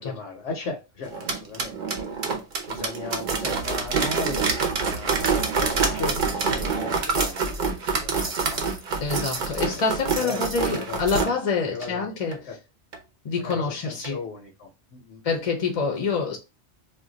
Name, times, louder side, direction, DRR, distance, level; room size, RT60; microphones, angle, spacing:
voice 1, 0.0-2.0 2.7-8.6 9.5-11.3 11.7-12.1 12.4-12.6 13.4-15.2, left 4 dB, 90° left, 1.0 m, -37 dB
sound 1, 1.0-11.3 11.8-11.9 12.3-12.4 12.9-13.0 13.5-13.6 14.0-14.1, right 4 dB, 55° right, 0.7 m, -26 dB
voice 2, 9.0-12.4 13.2-14.2 15.2-16.4, left 4 dB, 45° left, 0.5 m, -26 dB
2.5 x 2.2 x 3.8 m
omnidirectional pair, 1.1 m